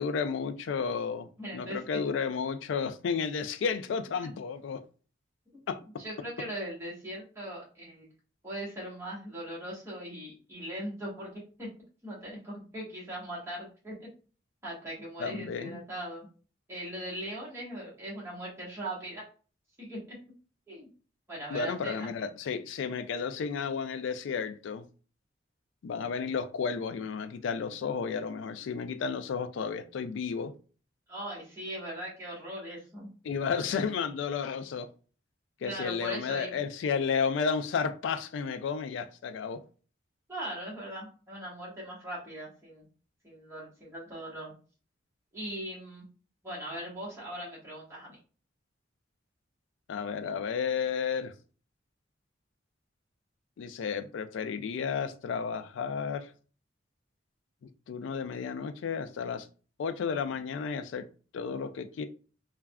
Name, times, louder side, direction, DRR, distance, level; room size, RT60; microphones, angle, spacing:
voice 1, 0.0-1.3 1.5-4.8 5.7-5.8 15.2-15.8 21.5-24.9 25.8-30.5 33.2-34.9 35.6-39.6 49.9-51.3 53.6-56.3 57.9-59.5 59.8-61.1 61.3-62.0, left 6 dB, 75° left, 0.3 m, -32 dB
voice 2, 1.4-2.0 6.0-8.0 8.4-11.7 12.0-14.1 14.6-16.3 16.7-19.2 19.8-20.2 20.7-20.9 21.3-22.3 31.1-33.1 33.5-33.8 35.6-36.6 40.3-42.8 43.2-44.5 45.3-46.0 46.4-48.2, right 1 dB, 15° right, 1.2 m, -40 dB
3.4 x 2.2 x 2.2 m
head